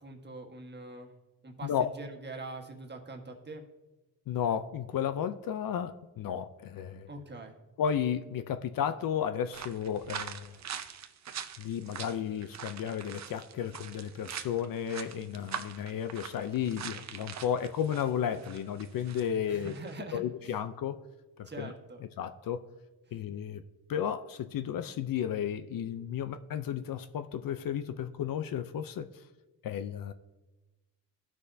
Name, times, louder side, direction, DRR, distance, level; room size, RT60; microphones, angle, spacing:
voice 1, 0.0-1.1 1.4-3.6 7.1-7.6 19.5-20.6 21.4-22.0, right 2 dB, 25° right, 1 dB, 1.4 m, -43 dB
voice 2, 4.3-7.1 7.8-10.6 11.6-19.8 20.1-21.0 21.4-21.7 22.2-22.7 23.1-23.6 23.9-29.1 29.6-30.1, left 9 dB, 60° left, 10 dB, 0.6 m, -33 dB
sound 1, 9.5-19.3 19.6-20.0, right 8 dB, 45° right, 0.7 m, -43 dB
15.0 x 6.2 x 2.7 m, 1.1 s
cardioid pair, 85°, 38 cm